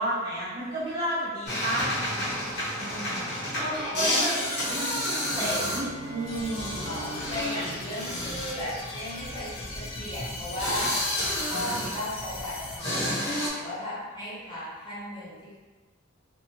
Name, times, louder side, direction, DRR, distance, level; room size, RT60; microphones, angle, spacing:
voice 1, 0.0-1.9 3.6-6.9, right 1 dB, 20° right, -10 dB, 0.6 m, -31 dB
sound 1, 1.5-12.4 12.8-13.5, left 1 dB, 55° left, 1.0 m, -30 dB
voice 2, 2.8-3.6 6.8-10.9 11.4-15.6, left 1 dB, 25° left, -10 dB, 1.0 m, -36 dB
sound 2, 4.5-9.0, right 3 dB, 85° right, 0.4 m, -45 dB
sound 3, 6.3-12.8, left 2 dB, 75° left, 0.5 m, -39 dB
2.7 x 2.3 x 2.7 m, 1.3 s
head